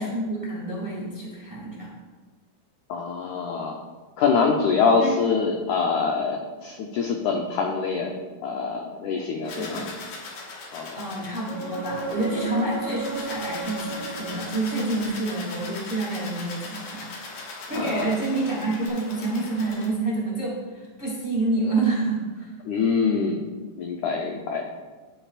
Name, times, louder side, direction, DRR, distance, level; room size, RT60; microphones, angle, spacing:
voice 1, 0.0-1.9 5.0-5.1 9.5-9.8 11.0-17.1 17.4-22.5, right 2 dB, 25° right, -6 dB, 1.2 m, -28 dB
voice 2, 2.9-3.8 4.2-8.1 8.4-9.9 10.7-11.0 17.7-18.2 22.7-23.4 23.8-24.6, left 5 dB, 85° left, 1 dB, 1.7 m, -25 dB
sound 1, 9.4-19.9, left 3 dB, 70° left, 2.9 m, -40 dB
sound 2, 11.4-15.2 18.9-19.0, right 3 dB, 10° right, 2.3 m, -34 dB
11.0 x 9.0 x 2.4 m, 1.3 s
omnidirectional pair, 4.3 m